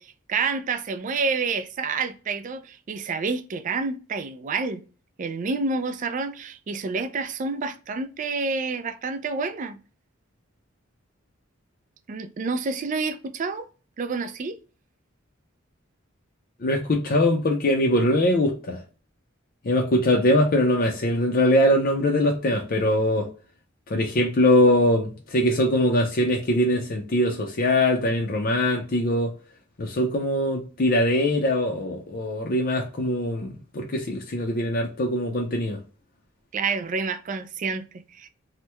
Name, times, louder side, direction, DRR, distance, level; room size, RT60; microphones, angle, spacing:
voice 1, 0.0-4.8 5.2-9.8 12.1-13.7 14.0-14.6 36.5-38.3, right 4 dB, 40° right, 0.3 m, -28 dB
voice 2, 16.6-18.8 19.6-23.3 23.9-29.3 29.8-35.8, left 1 dB, 45° left, 0.5 m, -22 dB
2.9 x 2.1 x 3.3 m
head